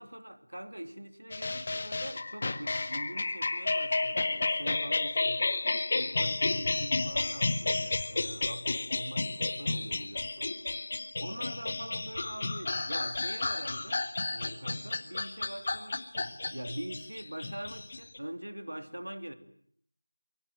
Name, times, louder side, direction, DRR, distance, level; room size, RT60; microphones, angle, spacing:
voice 1, 0.0-5.5 5.9-10.6 11.2-19.3, right 1 dB, 75° right, 3.1 m, -43 dB
sound 1, 1.3-18.2, left 3 dB, 30° left, 1.6 m, -32 dB
24.5 x 23.5 x 9.1 m
figure-of-eight pair, 170°, 0 cm